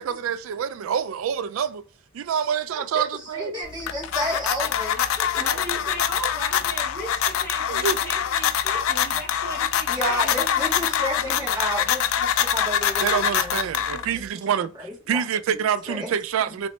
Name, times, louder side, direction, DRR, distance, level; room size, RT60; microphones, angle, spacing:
voice 1, 0.0-1.8 2.1-3.5 7.7-8.0 13.0-14.7 15.1-16.7, right 8 dB, 75° right, 0.3 m, -26 dB
voice 2, 2.7-5.3 9.9-13.6 13.9-14.7 15.1-15.2 15.5-15.6 15.9-16.1, equal, 20° right, 1.6 m, -31 dB
sound 1, 3.6-14.3, left 9 dB, 85° left, 0.3 m, -24 dB
voice 3, 5.4-10.6 10.9-11.3 15.9-16.1 16.5-16.7, equal, 10° left, 0.9 m, -37 dB
3.0 x 3.0 x 3.1 m
head